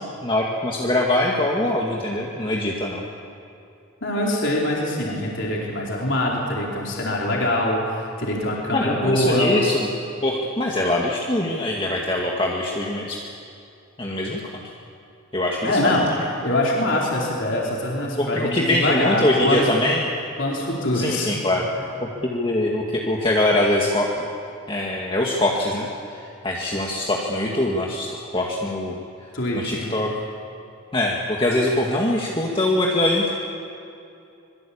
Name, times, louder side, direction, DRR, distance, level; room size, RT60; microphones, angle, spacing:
voice 1, 0.0-3.0 8.7-9.9 10.2-13.2 14.0-14.6 15.3-16.2 18.2-20.1 20.9-21.7 22.0-24.2 24.7-29.3 29.5-30.1 30.9-33.3, left 1 dB, 25° left, -2 dB, 2.1 m, -23 dB
voice 2, 4.0-9.5 15.6-16.1 16.4-19.7 20.4-21.3 21.7-21.8 29.3-30.0, left 1 dB, 60° left, -3 dB, 4.5 m, -24 dB
25.5 x 23.0 x 8.7 m, 2.7 s
head